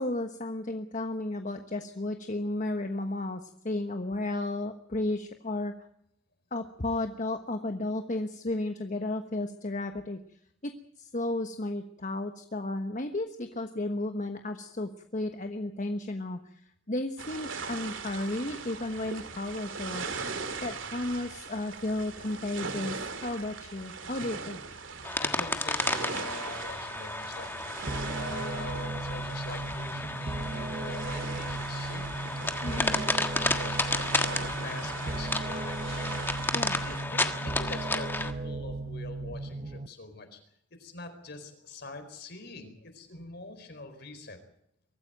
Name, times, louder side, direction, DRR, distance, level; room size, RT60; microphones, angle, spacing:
voice 1, 0.0-5.7 6.5-10.2 10.6-10.7 11.0-16.6 16.9-24.6 32.6-33.0 36.5-36.8, left 2 dB, 40° left, 7 dB, 1.2 m, -33 dB
sound 1, 17.2-37.0, right 4 dB, 85° right, 2.6 m, -40 dB
voice 2, 24.9-32.1 32.7-36.0 36.7-40.4 40.7-44.4, left 2 dB, 60° left, 7 dB, 4.5 m, -44 dB
sound 2, 25.0-38.3, left 2 dB, 10° left, 1.5 m, -32 dB
sound 3, 27.9-39.9, right 2 dB, 35° right, 0.7 m, -36 dB
23.5 x 14.0 x 9.1 m, 0.73 s
head